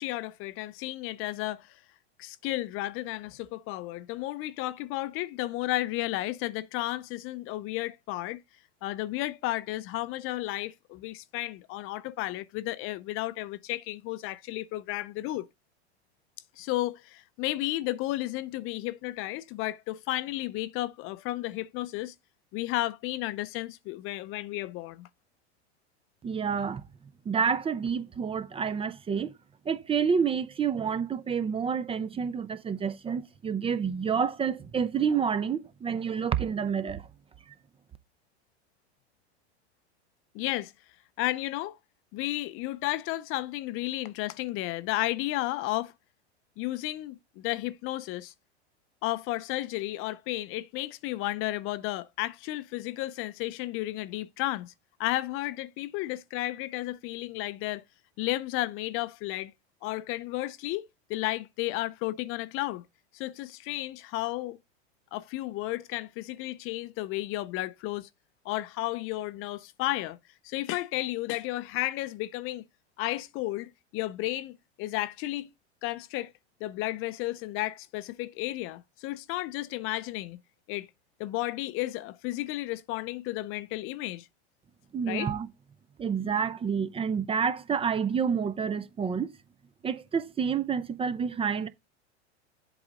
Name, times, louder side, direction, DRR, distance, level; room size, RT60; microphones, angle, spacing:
voice 1, 0.0-1.7 2.2-8.4 8.8-15.5 16.6-22.1 22.5-25.1 40.3-40.7 41.2-41.8 42.1-45.9 46.6-48.3 49.0-54.7 55.0-57.8 58.2-59.5 59.8-62.8 63.1-64.6 65.1-68.1 68.4-70.2 70.4-72.6 73.0-75.5 75.8-76.3 76.6-80.4 80.7-80.9 81.2-84.3 85.0-85.3, left 17 dB, 40° left, 0.6 m, -33 dB
voice 2, 26.2-26.8 27.3-29.3 29.7-37.0 84.9-85.5 86.0-89.3 89.8-91.7, right 6 dB, 15° right, 0.6 m, -29 dB
7.9 x 3.9 x 5.0 m
hypercardioid pair, 100°, 34 cm